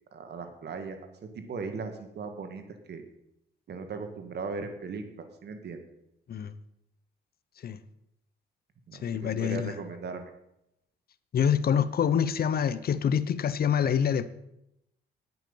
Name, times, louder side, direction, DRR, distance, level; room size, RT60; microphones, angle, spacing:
voice 1, 0.1-1.0 1.4-2.6 2.9-3.0 3.7-5.8 8.9-10.3, right 4 dB, 55° right, 1.7 m, -38 dB
voice 2, 8.9-9.7 11.3-14.3, left 8 dB, 50° left, 0.8 m, -26 dB
10.5 x 9.1 x 5.4 m
cardioid pair, 90°, 20 cm